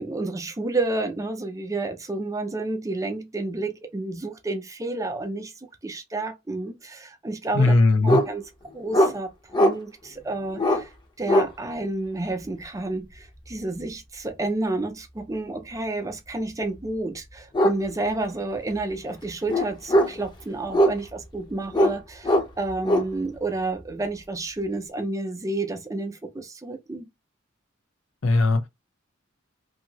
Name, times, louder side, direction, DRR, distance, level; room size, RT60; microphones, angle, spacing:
voice 1, 0.0-5.5 5.8-7.7 8.0-8.4 8.7-9.3 9.6-10.9 11.2-27.1, right 2 dB, 15° right, 0.5 m, -30 dB
voice 2, 7.5-8.2 28.2-28.7, left 2 dB, 85° left, 0.7 m, -19 dB
sound 1, 8.1-8.3 8.9-9.1 9.5-9.7 10.5-10.8 11.3-11.5 13.5-13.7 16.6-16.7 17.5-17.8 18.1-18.2 18.6-18.9 19.5-20.2 20.7-21.2 21.7-22.0 22.2-23.1, equal, 25° left, 0.7 m, -20 dB
2.8 x 2.7 x 2.8 m
head